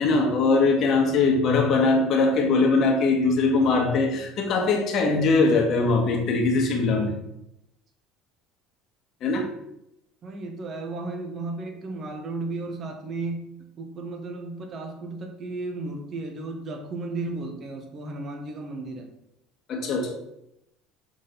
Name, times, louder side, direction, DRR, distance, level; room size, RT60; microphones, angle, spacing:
voice 1, 0.0-7.1 9.2-9.5 19.7-20.1, left 3 dB, 50° left, 2 dB, 1.3 m, -21 dB
voice 2, 10.2-19.1, right 3 dB, 40° right, 4 dB, 1.1 m, -34 dB
6.5 x 3.8 x 4.0 m, 0.82 s
supercardioid pair, 115°, 0 cm